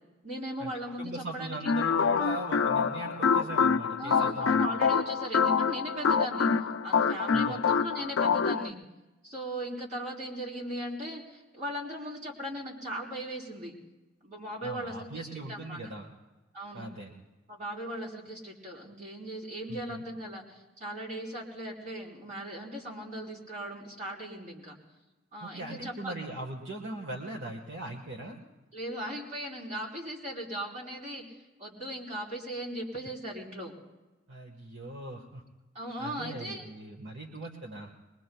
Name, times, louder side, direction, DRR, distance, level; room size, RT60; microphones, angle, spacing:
voice 1, 0.2-1.7 4.0-6.5 6.8-8.8 9.2-13.7 14.2-15.8 16.5-16.9 17.5-24.8 25.3-26.1 28.7-33.7 35.7-36.7, right 1 dB, 40° right, -4 dB, 3.7 m, -38 dB
voice 2, 1.0-4.7 7.3-7.6 14.6-16.1 16.7-17.1 19.7-20.0 25.4-28.4 34.3-35.4 36.0-37.9, right 2 dB, 65° right, 1 dB, 1.4 m, -40 dB
sound 1, 1.7-8.7, left 6 dB, 75° left, 0.5 m, -26 dB
22.5 x 22.0 x 2.3 m, 1.1 s
head